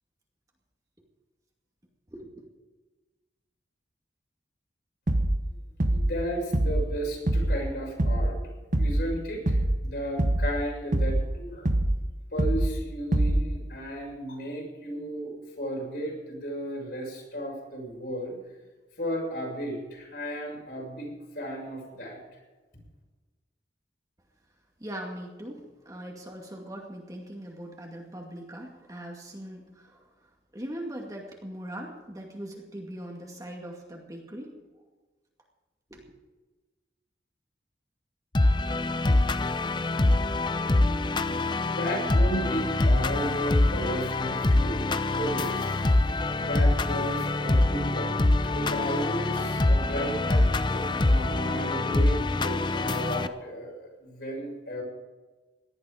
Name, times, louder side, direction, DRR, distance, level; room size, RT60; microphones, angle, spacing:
voice 1, 2.1-2.4 24.8-30.1 30.5-34.5 35.9-36.0, right 1 dB, 20° right, 0 dB, 2.3 m, -40 dB
sound 1, 5.1-5.4 5.8-6.2 6.5-6.9 7.3-7.6 8.0-8.4 8.7-9.1 9.5-9.8 10.2-10.6 10.9-11.3 11.7-12.0 12.4-12.8 13.1-13.5, right 1 dB, 45° right, 1.1 m, -24 dB
voice 2, 5.8-8.5 8.8-11.7 12.3-15.3 15.6-18.4 19.0-22.2 22.7-22.8 41.7-44.8 45.1-45.7 46.4-54.8, equal, 65° left, -2 dB, 6.8 m, -34 dB
sound 2, 38.3-53.3, left 2 dB, 25° left, 0.6 m, -25 dB
18.5 x 12.5 x 5.1 m, 1.2 s
head